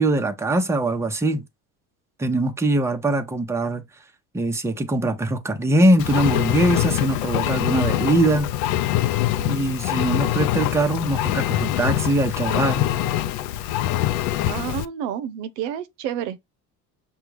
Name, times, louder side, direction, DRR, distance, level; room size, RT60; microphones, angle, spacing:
voice 1, 0.0-1.4 2.2-3.8 4.3-8.5 9.5-12.8, right 1 dB, 5° right, 0.7 m, -22 dB
Engine, 6.0-14.9, left 13 dB, 80° left, 0.5 m, -24 dB
voice 2, 14.5-16.4, right 10 dB, 80° right, 0.7 m, -29 dB
5.8 x 2.4 x 3.2 m
supercardioid pair, 80°, 45 cm